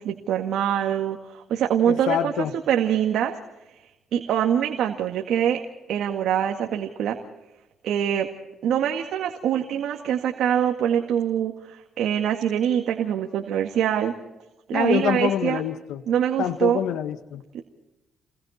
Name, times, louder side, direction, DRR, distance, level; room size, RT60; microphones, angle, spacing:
voice 1, 0.0-2.3 2.7-3.4 4.1-5.6 5.9-7.2 7.8-8.3 8.6-14.1 14.7-15.6 16.1-16.8 17.5-17.6, right 9 dB, 80° right, 3 dB, 2.0 m, -24 dB
voice 2, 1.9-2.5 14.7-16.0 16.4-17.4, left 10 dB, 85° left, 10 dB, 1.5 m, -26 dB
30.0 x 21.5 x 4.3 m, 1.0 s
cardioid pair, 90°, 0 cm